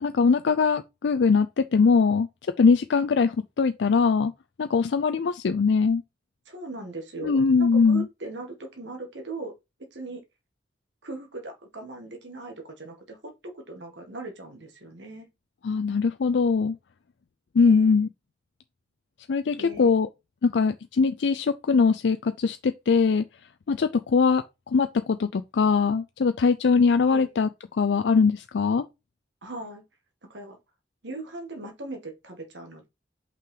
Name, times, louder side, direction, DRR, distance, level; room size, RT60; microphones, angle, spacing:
voice 1, 0.0-2.3 2.6-4.3 4.6-6.0 7.2-8.1 15.6-16.8 17.6-18.1 19.3-20.1 20.4-23.2 23.7-27.5 27.8-28.9, left 5 dB, 75° left, 0.4 m, -22 dB
voice 2, 6.5-9.5 9.9-10.2 11.0-13.2 13.5-15.3 17.6-18.0 19.6-19.9 27.1-27.3 29.4-29.8 30.3-30.6 31.0-32.9, right 2 dB, 85° right, 1.8 m, -39 dB
5.6 x 4.8 x 3.8 m
head